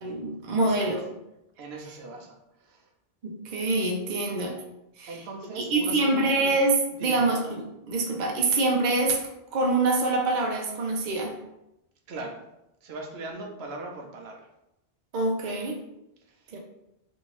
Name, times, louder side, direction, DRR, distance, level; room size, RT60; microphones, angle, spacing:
voice 1, 0.0-1.0 3.2-4.6 5.0-5.2 5.6-9.2 9.5-11.4 15.1-15.8 16.5-16.6, right 2 dB, 55° right, 1 dB, 0.6 m, -25 dB
voice 2, 0.6-1.0 1.6-2.9 5.1-6.1 6.4-6.5 6.9-7.3 12.1-12.4 12.8-14.5 16.3-16.5, right 2 dB, 85° right, 2 dB, 0.8 m, -39 dB
2.7 x 2.6 x 3.0 m, 0.88 s
omnidirectional pair, 1.0 m